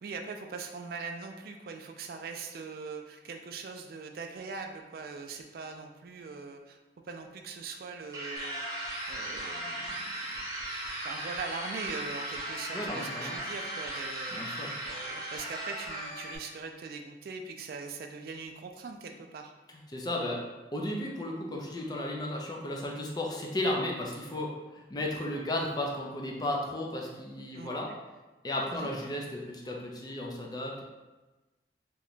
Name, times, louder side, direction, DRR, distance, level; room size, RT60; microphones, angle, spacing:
voice 1, 0.0-6.8 7.1-8.8 9.1-10.1 11.0-14.4 14.8-19.5 27.5-28.0 28.7-28.9, right 4 dB, 55° right, 4 dB, 0.3 m, -41 dB
sound 1, 8.1-16.4, right 2 dB, 20° right, 0.7 m, -38 dB
sound 2, 8.4-16.4, left 1 dB, 60° left, 0.7 m, -43 dB
voice 2, 12.7-13.4 14.3-14.7 19.9-20.4 20.7-27.9 28.4-30.8, left 1 dB, 25° left, -1 dB, 0.4 m, -34 dB
2.9 x 2.2 x 3.9 m, 1.2 s
head